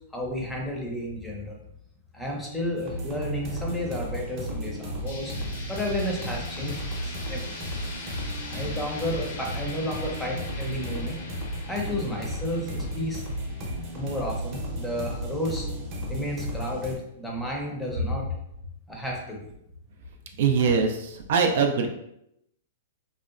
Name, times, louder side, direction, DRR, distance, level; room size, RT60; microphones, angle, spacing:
voice 1, 0.1-1.6 2.1-7.7 8.5-11.2 11.7-13.2 13.9-15.7 16.1-18.3 18.9-19.5, left 1 dB, 5° left, -1 dB, 0.6 m, -32 dB
sound 1, 2.8-16.9, equal, 40° right, 0.7 m, -34 dB
sound 2, 5.1-14.8, left 3 dB, 65° left, 0.6 m, -42 dB
voice 2, 20.4-21.9, right 5 dB, 65° right, 4 dB, 0.4 m, -22 dB
2.8 x 2.1 x 2.4 m, 0.79 s
hypercardioid pair, 130°, 0 cm